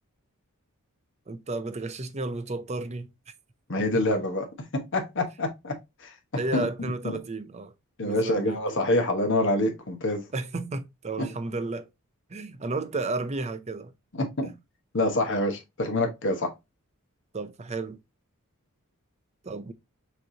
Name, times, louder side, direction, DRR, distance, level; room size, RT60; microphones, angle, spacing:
voice 1, 1.3-3.1 3.9-4.0 6.3-7.7 8.0-8.6 10.3-11.9 12.3-13.9 14.4-14.6 17.3-18.0 19.4-19.7, right 3 dB, 30° right, 0.6 m, -32 dB
voice 2, 3.7-4.5 4.7-5.7 6.0-6.1 6.5-6.7 8.0-10.2 11.2-11.3 14.2-14.5 14.9-16.5, left 1 dB, 55° left, 1.2 m, -26 dB
6.2 x 3.2 x 2.7 m
head